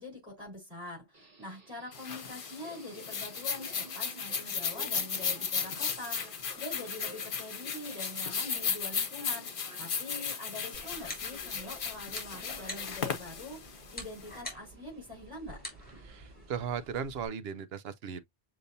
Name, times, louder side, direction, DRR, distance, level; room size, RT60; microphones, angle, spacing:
voice 1, 0.0-9.5 9.8-15.6, left 2 dB, 25° right, 4.3 m, -44 dB
Subway metro underground, 1.1-16.9, right 2 dB, 50° right, 1.9 m, -55 dB
sound 1, 1.9-14.4, left 6 dB, 55° left, 0.9 m, -35 dB
sound 2, 10.7-17.3, equal, 10° left, 2.7 m, -47 dB
voice 2, 16.0-18.2, right 7 dB, 75° right, 0.9 m, -37 dB
6.8 x 2.9 x 2.7 m
omnidirectional pair, 1.1 m